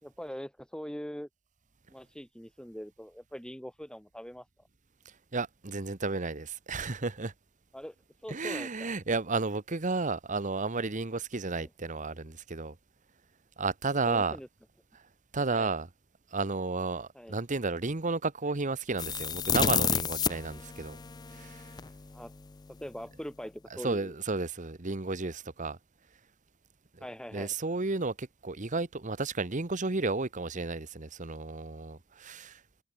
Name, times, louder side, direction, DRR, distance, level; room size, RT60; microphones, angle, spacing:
voice 1, 0.0-1.3 1.9-4.5 7.7-7.9 8.2-8.9 11.6-11.7 14.1-14.5 15.5-15.7 17.1-17.4 22.1-22.3 22.7-24.1 27.0-27.5, equal, 5° left, 2.9 m, -42 dB
voice 2, 5.3-7.3 8.3-12.8 13.6-14.4 15.3-15.9 16.3-21.0 21.3-21.7 23.7-25.8 26.9-27.0 27.3-32.6, right 3 dB, 35° right, 1.1 m, -32 dB
sound 1, 19.0-21.9, left 7 dB, 20° left, 0.4 m, -30 dB
head